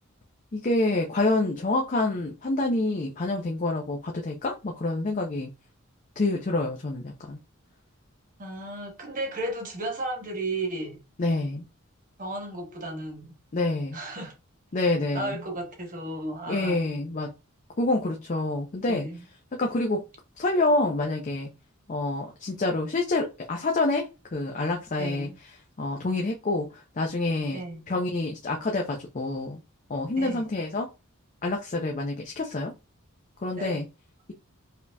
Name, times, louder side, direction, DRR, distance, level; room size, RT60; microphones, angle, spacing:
voice 1, 0.5-5.5 6.2-7.4 11.2-11.7 13.5-14.0 14.7-15.4 16.5-17.3 17.8-19.1 19.5-20.0 20.4-21.5 21.9-25.3 25.8-27.6 27.9-29.6 29.9-30.9 31.4-32.7 33.4-33.9, left 2 dB, 35° left, 0.5 m, -27 dB
voice 2, 8.4-11.0 12.2-13.3 13.9-14.3 14.8-16.8 18.9-19.2 25.0-25.4 27.5-27.8 30.2-30.4 33.5-33.8, right 2 dB, 40° right, 1.1 m, -34 dB
5.0 x 2.7 x 2.2 m
head